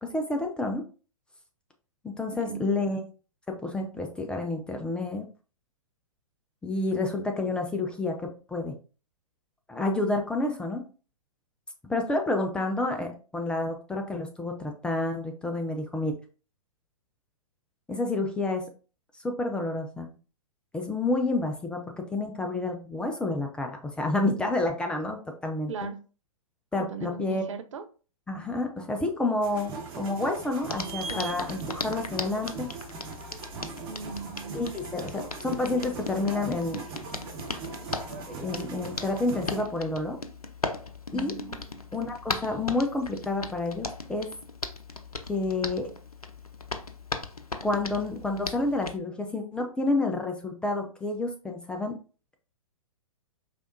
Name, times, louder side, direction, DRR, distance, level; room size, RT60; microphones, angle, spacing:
voice 1, 0.0-0.8 2.0-3.0 3.5-5.3 6.6-8.8 9.7-10.8 11.8-16.1 17.9-18.7 19.1-20.1 20.7-25.7 26.7-27.4 28.3-32.7 34.5-36.8 38.3-40.2 41.1-41.6 41.9-44.3 45.3-45.9 47.6-52.0, left 2 dB, 5° left, 0.4 m, -29 dB
voice 2, 2.3-3.0 6.9-7.0 25.7-26.0 26.9-27.8 31.1-31.3 33.9-34.6 41.5-41.8, right 5 dB, 55° right, 0.6 m, -39 dB
sound 1, 29.4-39.6, right 5 dB, 30° right, 1.9 m, -40 dB
Hands, 30.7-49.0, left 3 dB, 85° left, 0.6 m, -38 dB
5.0 x 3.4 x 2.5 m
figure-of-eight pair, 115°, 18 cm